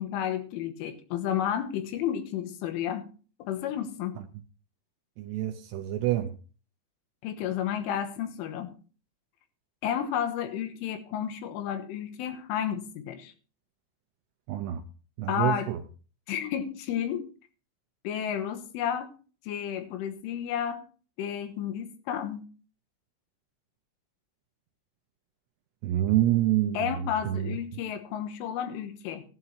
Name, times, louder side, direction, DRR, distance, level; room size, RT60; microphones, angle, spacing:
voice 1, 0.0-3.1 3.4-4.2 7.2-8.7 9.8-13.3 15.3-15.7 16.3-17.3 18.1-19.1 19.5-20.8 21.2-22.4 26.8-29.2, left 9 dB, 85° left, 7 dB, 3.7 m, -31 dB
voice 2, 5.2-6.3 14.5-14.8 15.2-15.8 25.8-27.6, right 13 dB, 80° right, 6 dB, 2.4 m, -27 dB
17.5 x 11.0 x 2.8 m, 0.39 s
omnidirectional pair, 5.6 m